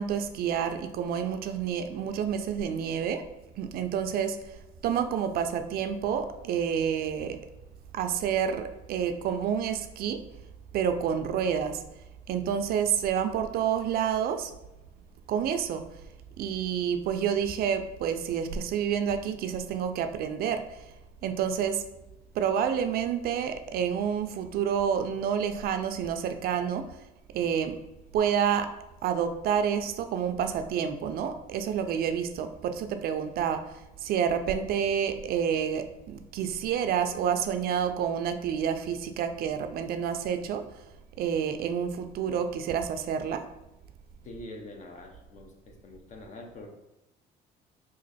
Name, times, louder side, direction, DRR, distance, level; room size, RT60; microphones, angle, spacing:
voice 1, 0.0-3.2 3.6-4.4 4.8-7.4 7.9-10.2 10.7-11.8 12.3-14.5 15.3-15.8 16.4-20.6 21.2-21.8 22.4-26.9 27.3-27.8 28.1-28.7 29.0-33.6 34.0-40.6 41.2-43.5, right 8 dB, 65° right, 8 dB, 0.4 m, -29 dB
voice 2, 44.2-46.7, left 2 dB, 45° left, 2 dB, 0.7 m, -45 dB
3.0 x 2.5 x 4.0 m, 0.95 s
cardioid pair, 110°, 17 cm